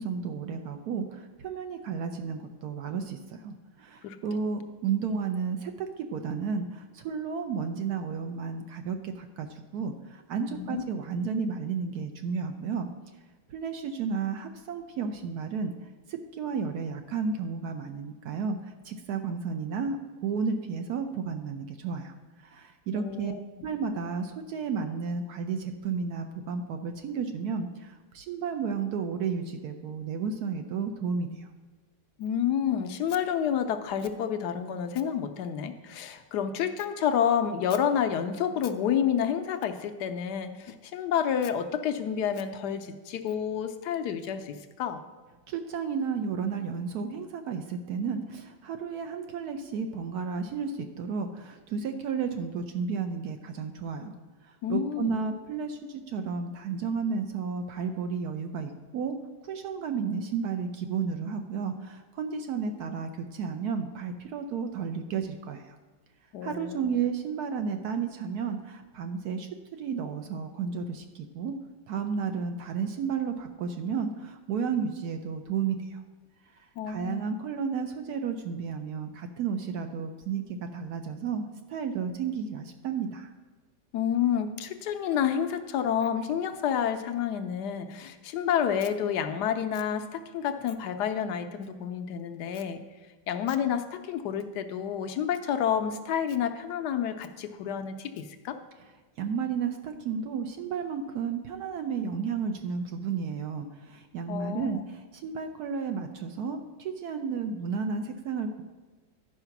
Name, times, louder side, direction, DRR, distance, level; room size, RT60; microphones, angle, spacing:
voice 1, 0.0-12.9 13.5-15.7 16.1-22.1 22.4-23.3 23.6-31.5 45.5-54.1 54.4-59.2 59.4-65.8 66.4-71.6 71.9-76.0 76.6-83.3 99.2-108.6, right 6 dB, 70° right, 6 dB, 1.0 m, -32 dB
voice 2, 10.5-10.8 22.9-23.4 32.2-45.0 54.6-55.1 66.3-66.9 76.8-77.3 83.9-92.8 93.3-98.6 104.3-104.8, left 8 dB, 70° left, 8 dB, 1.1 m, -29 dB
11.0 x 4.9 x 5.8 m, 1.3 s
omnidirectional pair, 2.0 m